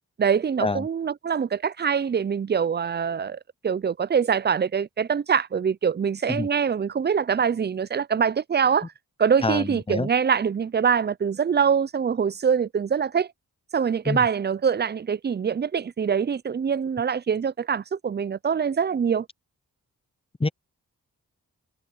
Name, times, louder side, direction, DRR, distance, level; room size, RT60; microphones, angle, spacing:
voice 1, 0.2-8.9 9.2-13.3 13.7-19.3, right 7 dB, 30° right, 0.4 m, -24 dB
voice 2, 9.4-10.1 14.1-14.3 20.4-20.5, left 3 dB, 15° left, 0.6 m, -26 dB
cardioid pair, 45°, 38 cm